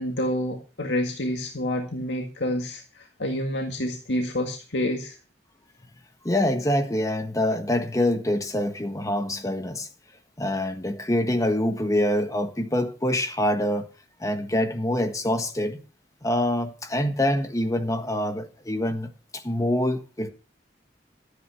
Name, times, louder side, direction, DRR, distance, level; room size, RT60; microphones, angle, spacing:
voice 1, 0.0-5.2, left 1 dB, 80° left, 1.9 m, -28 dB
voice 2, 6.2-9.9 10.4-13.9 14.2-15.8 16.2-20.3, left 1 dB, 20° left, 1.5 m, -25 dB
13.5 x 9.6 x 5.7 m
head